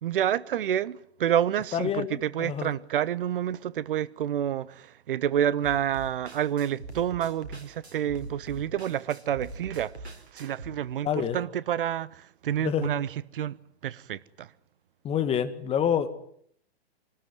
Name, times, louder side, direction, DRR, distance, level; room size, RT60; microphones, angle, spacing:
voice 1, 0.0-9.9 10.3-13.1 13.3-13.6 13.8-14.5, right 10 dB, 55° right, 1.1 m, -28 dB
voice 2, 1.7-2.7 11.0-11.4 12.6-12.9 15.0-16.1, left 9 dB, 20° left, 2.0 m, -27 dB
sound 1, 5.6-10.7, right 2 dB, 80° right, 4.5 m, -42 dB
24.5 x 19.5 x 9.5 m
figure-of-eight pair, 120°, 32 cm